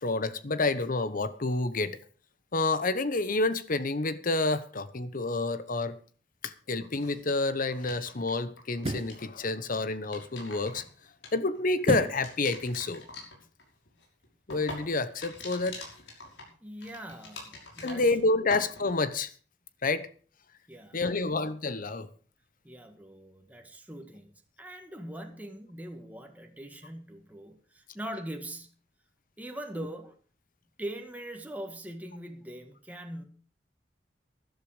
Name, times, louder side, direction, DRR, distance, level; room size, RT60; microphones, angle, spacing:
voice 1, 0.0-2.0 2.5-6.0 6.4-10.8 11.3-13.0 14.5-15.8 17.8-19.3 19.8-20.1 20.9-22.1, left 3 dB, 50° left, 1.0 m, -29 dB
sound 1, 6.8-8.3 8.6-9.3 9.9-11.8 12.2-18.2 18.5-19.1, left 2 dB, 90° left, 5.8 m, -45 dB
sound 2, 6.8-7.0 8.7-9.2 11.8-12.3 12.7-12.8, right 2 dB, 35° right, 0.7 m, -31 dB
voice 2, 16.6-18.1 20.7-21.2 22.6-24.3 24.6-28.7 29.4-30.1 30.8-33.2, right 1 dB, 10° right, 1.9 m, -42 dB
13.5 x 12.0 x 5.1 m
head